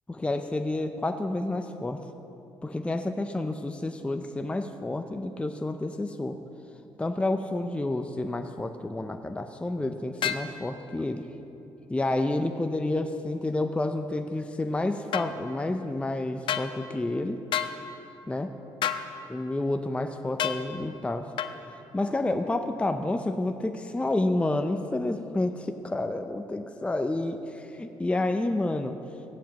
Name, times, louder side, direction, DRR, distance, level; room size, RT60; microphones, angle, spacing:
voice 1, 0.1-2.0 2.6-6.4 7.0-11.2 11.9-17.4 18.3-18.5 19.3-21.3 21.9-29.0, left 2 dB, 15° left, 7 dB, 0.5 m, -29 dB
sound 1, 10.2-10.5 15.1-15.3 16.5-16.7 17.5-17.8 18.8-19.1 20.4-20.6 21.4-21.6, left 9 dB, 70° left, 0.5 m, -28 dB
15.0 x 10.0 x 3.0 m, 2.8 s
supercardioid pair, 70°, 9 cm